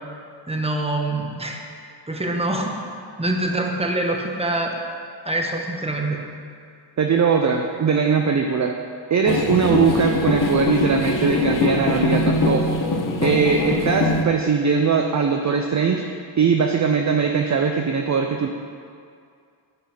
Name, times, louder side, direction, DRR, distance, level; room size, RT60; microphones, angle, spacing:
voice 1, 0.5-1.6 2.1-2.8 3.2-4.7 5.2-6.2, right 2 dB, 15° right, 1 dB, 1.1 m, -24 dB
voice 2, 7.0-8.7 9.1-12.8 13.2-16.0 16.4-18.5, right 6 dB, 40° right, 4 dB, 0.5 m, -20 dB
sound 1, 9.3-14.2, left 3 dB, 45° left, 0.9 m, -22 dB
8.9 x 5.4 x 5.7 m, 2.3 s
wide cardioid pair, 90°, 45 cm